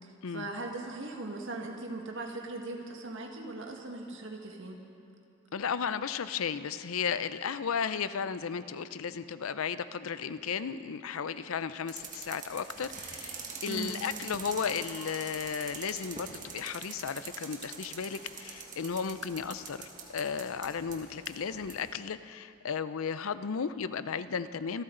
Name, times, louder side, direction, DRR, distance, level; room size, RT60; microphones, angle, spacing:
voice 1, 0.0-4.8 13.7-14.0, right 2 dB, 65° right, 2 dB, 1.8 m, -39 dB
voice 2, 5.5-24.8, left 6 dB, 85° left, 13 dB, 0.5 m, -34 dB
sound 1, 11.9-21.9, right 5 dB, 40° right, 1.7 m, -44 dB
26.0 x 13.0 x 3.9 m, 2.6 s
head